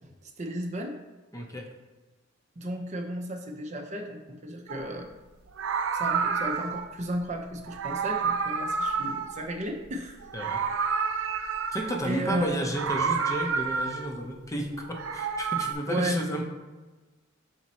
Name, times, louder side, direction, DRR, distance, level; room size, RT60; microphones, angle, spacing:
voice 1, 0.0-1.0 2.6-5.1 5.9-10.2 12.0-12.7 15.9-16.3, right 1 dB, 35° right, 3 dB, 0.6 m, -34 dB
voice 2, 1.3-1.7 10.3-10.6 11.7-16.4, equal, 15° left, 2 dB, 0.6 m, -32 dB
Meow, 4.7-4.9 5.5-6.9 7.7-9.9 10.2-12.1 12.6-14.2 14.8-15.7, right 5 dB, 80° right, 0.4 m, -29 dB
6.1 x 4.2 x 4.2 m, 1.2 s
head